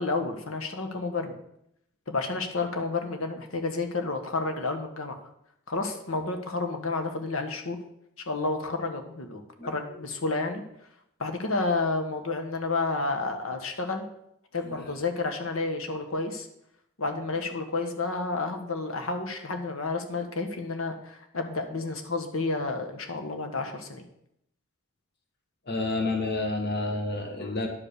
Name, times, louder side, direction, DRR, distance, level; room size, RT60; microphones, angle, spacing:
voice 1, 0.0-1.3 2.1-5.2 5.7-7.8 8.3-10.6 11.2-14.0 14.5-16.5 17.0-24.0, left 3 dB, 70° left, 5 dB, 1.4 m, -30 dB
voice 2, 14.6-15.0 21.8-21.9 25.7-27.7, left 2 dB, 50° left, 3 dB, 1.8 m, -30 dB
10.5 x 5.0 x 6.7 m, 0.77 s
head